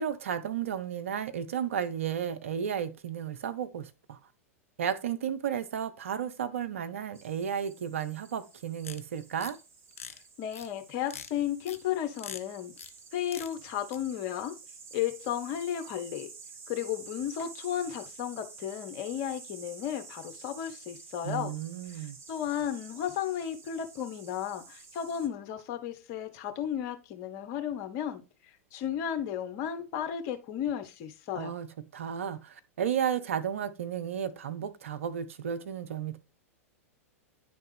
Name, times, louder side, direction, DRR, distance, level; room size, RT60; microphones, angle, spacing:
voice 1, 0.0-4.2 4.8-9.6 21.2-22.2 31.3-36.2, right 8 dB, 60° right, 0.6 m, -33 dB
sound 1, 7.1-25.3, right 4 dB, 30° right, 1.0 m, -50 dB
sound 2, 8.8-9.0 9.4-9.5 9.9-10.2 10.5-10.7 11.1-11.3 11.7-11.8 12.2-12.4 12.8-13.0 13.3-13.5 13.9-14.0, left 6 dB, 70° left, 0.6 m, -42 dB
voice 2, 10.4-12.7 13.1-14.6 14.9-16.3 16.7-21.5 21.9-28.2 28.7-31.6, left 10 dB, 40° left, 0.8 m, -34 dB
9.9 x 3.3 x 3.3 m
figure-of-eight pair, 95°, 8 cm